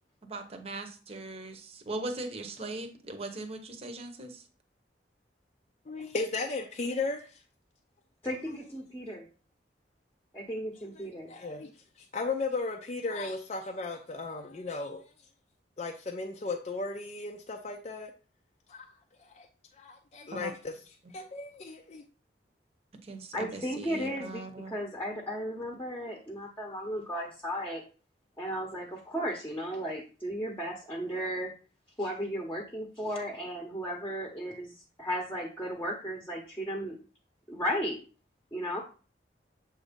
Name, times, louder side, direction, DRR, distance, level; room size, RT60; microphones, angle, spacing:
voice 1, 0.2-4.4 20.4-20.5 23.0-24.7, right 2 dB, 35° right, 5 dB, 0.9 m, -39 dB
voice 2, 5.9-7.4 11.3-11.7 12.1-15.0 15.8-18.1 18.7-18.9 19.3-19.5 19.7-20.7 21.1-22.0, left 3 dB, 40° left, 3 dB, 0.5 m, -35 dB
voice 3, 8.2-9.3 10.3-11.3 23.3-27.8 28.4-31.5 32.0-37.0 37.5-38.0 38.5-38.8, equal, 10° left, 0 dB, 0.9 m, -35 dB
7.2 x 2.7 x 5.1 m, 0.36 s
head